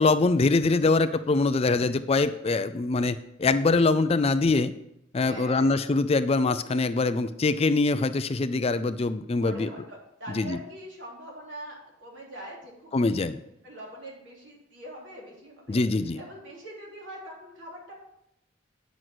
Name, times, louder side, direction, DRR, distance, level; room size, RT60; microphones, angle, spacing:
voice 1, 0.0-4.7 5.1-9.7 10.3-10.6 12.9-13.4 15.7-16.2, left 3 dB, 30° left, 12 dB, 0.4 m, -23 dB
voice 2, 5.2-5.8 9.4-11.8 12.0-13.3 13.6-17.9, equal, 65° right, -3 dB, 3.5 m, -43 dB
9.3 x 6.3 x 6.0 m, 0.81 s
head